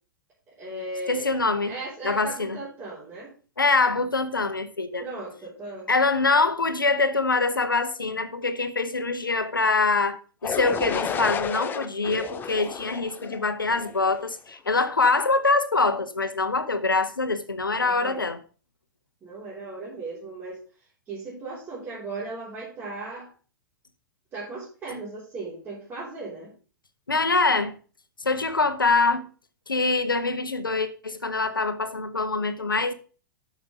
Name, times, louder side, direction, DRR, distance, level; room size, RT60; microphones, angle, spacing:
voice 1, 0.6-1.3 1.7-3.3 5.0-5.9 17.8-18.2 19.2-20.6 21.1-23.3 24.3-26.5, right 3 dB, 20° right, 3.7 m, -36 dB
voice 2, 1.1-1.7 2.0-2.6 3.6-5.0 5.9-18.4 27.1-27.7 28.2-29.3 29.7-32.9, left 3 dB, 80° left, 1.1 m, -24 dB
sound 1, 10.4-14.3, left 7 dB, 20° left, 0.7 m, -32 dB
8.8 x 6.4 x 5.2 m
figure-of-eight pair, 100°, 11 cm